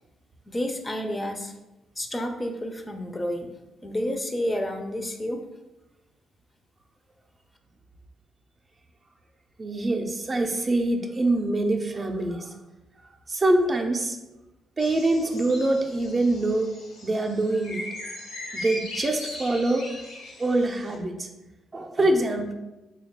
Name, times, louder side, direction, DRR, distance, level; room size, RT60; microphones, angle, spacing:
voice 1, 0.5-1.5 2.0-3.5 3.8-5.4, left 1 dB, 25° left, 4 dB, 0.4 m, -30 dB
voice 2, 9.6-12.4 13.3-14.2 14.8-16.7 17.0-17.8 18.5-19.9 20.4-21.3 21.7-22.5, right 2 dB, 35° right, 2 dB, 0.4 m, -24 dB
sound 1, 14.8-21.0, left 1 dB, 90° left, 0.9 m, -39 dB
3.2 x 2.2 x 3.5 m, 1.0 s
supercardioid pair, 60°, 0 cm